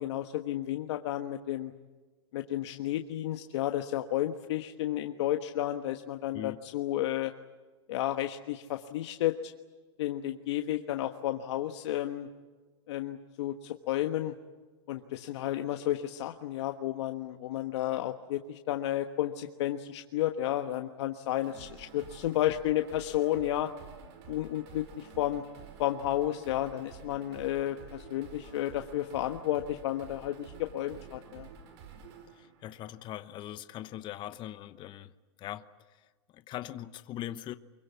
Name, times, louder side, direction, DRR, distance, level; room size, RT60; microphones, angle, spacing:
voice 1, 0.0-1.7 2.3-7.3 7.9-9.5 10.0-12.3 12.9-14.3 14.9-23.7 24.3-25.4 25.8-31.5, left 13 dB, 70° left, 1.4 m, -32 dB
sound 1, 21.4-33.4, right 6 dB, 65° right, 5.4 m, -50 dB
voice 2, 32.4-35.1 35.4-35.7 36.3-37.5, left 12 dB, 30° left, 1.0 m, -41 dB
24.5 x 23.0 x 8.4 m
supercardioid pair, 135°, 15 cm